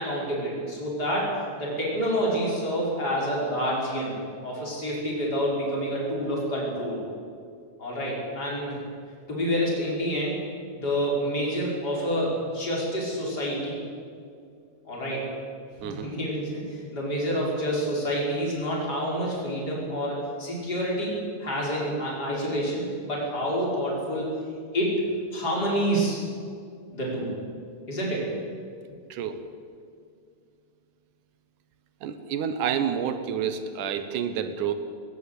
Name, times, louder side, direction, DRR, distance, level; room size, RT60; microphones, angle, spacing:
voice 1, 0.0-1.3 1.6-4.1 4.4-7.0 7.8-8.8 9.3-10.4 10.8-13.8 14.9-15.3 15.8-21.1 21.4-24.3 24.7-25.0 25.3-26.2 26.9-27.3 27.9-28.3, equal, 30° left, -4 dB, 6.3 m, -28 dB
voice 2, 15.8-16.1 29.1-29.4 32.0-34.7, right 8 dB, 85° right, 10 dB, 2.7 m, -29 dB
20.0 x 18.5 x 8.5 m, 2.3 s
omnidirectional pair, 3.5 m